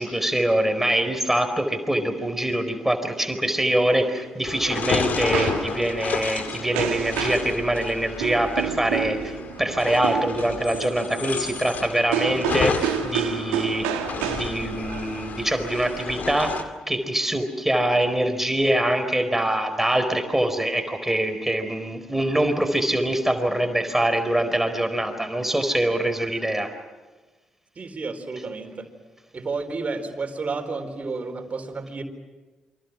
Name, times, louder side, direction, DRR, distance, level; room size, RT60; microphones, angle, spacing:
voice 1, 0.0-13.9 14.2-26.7, right 1 dB, 10° right, 7 dB, 4.4 m, -24 dB
sound 1, 4.2-16.6, right 9 dB, 85° right, 1.7 m, -31 dB
sound 2, 4.4-16.6, left 5 dB, 55° left, 2.4 m, -31 dB
voice 2, 27.8-28.9 29.3-32.0, right 4 dB, 45° right, 5 dB, 4.1 m, -31 dB
28.5 x 24.5 x 6.2 m, 1.3 s
hypercardioid pair, 40°, 3 cm